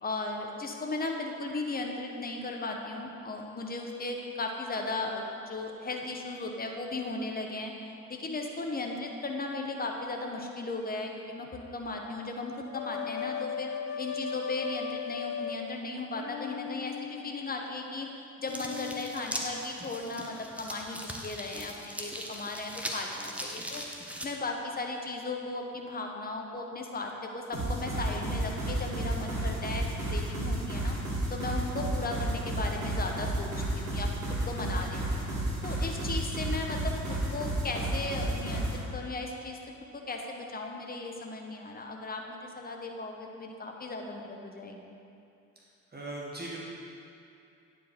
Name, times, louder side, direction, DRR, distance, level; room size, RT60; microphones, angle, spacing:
voice 1, 0.0-7.7 8.1-13.7 14.0-18.1 18.4-23.8 24.2-29.8 30.1-31.0 31.3-34.1 34.5-35.3 35.6-39.6 39.9-44.9, left 2 dB, 20° left, 2 dB, 1.0 m, -36 dB
sound 1, 12.7-15.9 16.1-17.7 18.4-19.4, left 8 dB, 55° left, 0.5 m, -38 dB
sound 2, 18.5-24.3, equal, 5° right, 0.9 m, -40 dB
sound 3, 27.5-38.8, right 1 dB, 80° right, 1.6 m, -31 dB
voice 2, 45.9-46.6, right 2 dB, 25° right, -5 dB, 1.6 m, -39 dB
9.4 x 4.7 x 4.4 m, 2.6 s
figure-of-eight pair, 45°, 41 cm